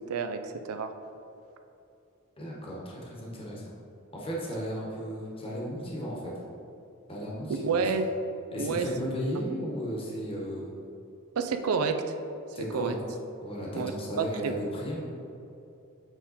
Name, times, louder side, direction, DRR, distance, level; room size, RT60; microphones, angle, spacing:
voice 1, 0.1-0.9 7.6-8.1 8.6-8.9 11.4-12.0 12.7-13.0 13.7-13.9 14.2-14.5, right 5 dB, 80° right, 7 dB, 0.5 m, -29 dB
voice 2, 2.4-3.6 4.1-6.3 7.1-7.8 8.5-10.7 12.5-13.0 13.4-15.1, equal, 25° left, -4 dB, 1.2 m, -35 dB
8.1 x 3.6 x 4.1 m, 2.8 s
head